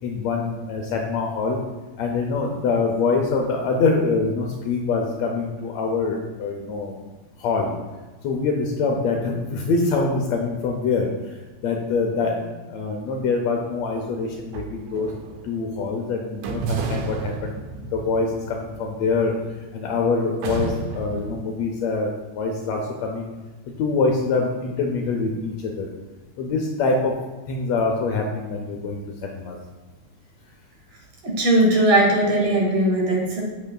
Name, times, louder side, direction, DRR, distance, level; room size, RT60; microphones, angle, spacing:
voice 1, 0.0-1.6 2.0-7.0 7.4-7.7 8.2-15.1 15.4-19.3 19.7-23.3 23.8-25.9 26.4-27.1 27.5-29.6, left 4 dB, 75° left, 1 dB, 1.6 m, -24 dB
sound 1, 14.3-15.7 16.4-19.8 20.4-21.4, right 4 dB, 80° right, 2.0 m, -32 dB
voice 2, 31.2-33.4, right 1 dB, 60° right, -2 dB, 2.3 m, -19 dB
8.0 x 7.6 x 2.3 m, 1.2 s
omnidirectional pair, 3.5 m